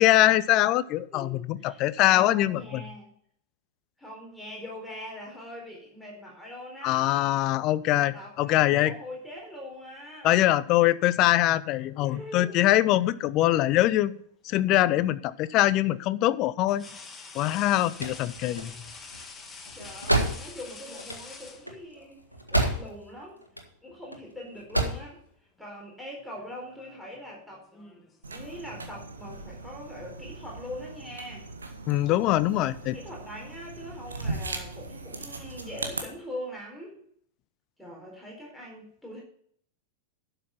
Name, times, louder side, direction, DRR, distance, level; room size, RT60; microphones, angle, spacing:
voice 1, 0.0-2.8 6.8-8.9 10.2-14.2 14.4-16.8 17.3-18.7 31.9-33.0, left 15 dB, 40° left, 17 dB, 0.5 m, -23 dB
voice 2, 1.1-3.1 4.0-7.4 7.8-10.3 12.0-12.7 19.7-22.2 22.5-23.4 23.8-25.2 25.6-28.0 28.3-31.5 32.9-37.0 37.8-39.2, left 1 dB, 5° left, -2 dB, 4.1 m, -42 dB
sound 1, 12.9-13.2 15.0-15.1 16.7-22.1 23.3-23.5 23.9-24.7 25.0-25.3 26.2-28.8, left 4 dB, 20° left, 1.7 m, -47 dB
sound 2, 17.5-23.2 23.4-24.2 24.5-25.1, right 1 dB, 90° left, 1.6 m, -29 dB
sound 3, 28.2-36.0, right 3 dB, 75° right, 1.5 m, -39 dB
11.5 x 6.8 x 5.7 m, 0.64 s
figure-of-eight pair, 90°, 0 cm